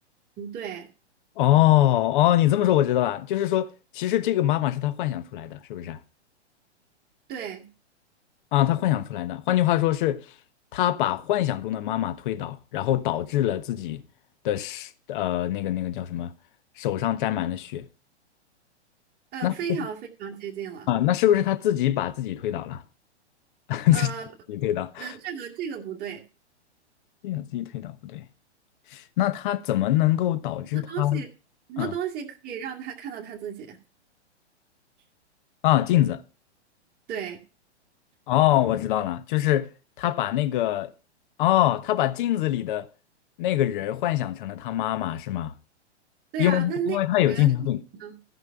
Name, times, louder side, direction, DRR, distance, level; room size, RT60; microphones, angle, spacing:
voice 1, 0.4-0.9 7.3-7.7 19.3-20.9 23.9-24.3 25.0-26.2 30.7-31.3 31.7-33.8 37.1-37.4 46.3-47.0 47.3-47.5 47.9-48.2, right 8 dB, 25° right, 2.3 m, -34 dB
voice 2, 1.4-3.7 3.9-6.0 8.5-10.2 10.7-14.0 14.4-16.3 16.8-17.9 19.4-19.9 20.9-22.8 23.7-24.1 24.5-25.1 27.2-28.2 28.9-31.2 31.8-31.9 35.6-36.2 38.3-39.7 40.0-40.9 41.4-42.9 43.4-45.5 46.4-47.8, left 13 dB, 45° left, 1.2 m, -24 dB
14.5 x 6.0 x 5.8 m
hypercardioid pair, 120°, 34 cm